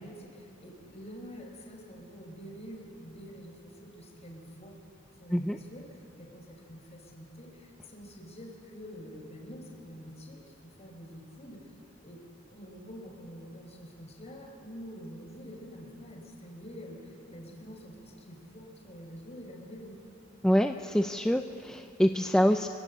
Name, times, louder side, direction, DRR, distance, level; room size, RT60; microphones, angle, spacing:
voice 1, 0.0-4.8 5.2-11.7 12.0-12.2 12.5-20.0, equal, 35° left, 1 dB, 5.1 m, -47 dB
voice 2, 20.4-22.7, equal, 5° left, 5 dB, 0.6 m, -25 dB
28.0 x 23.0 x 8.8 m, 2.6 s
head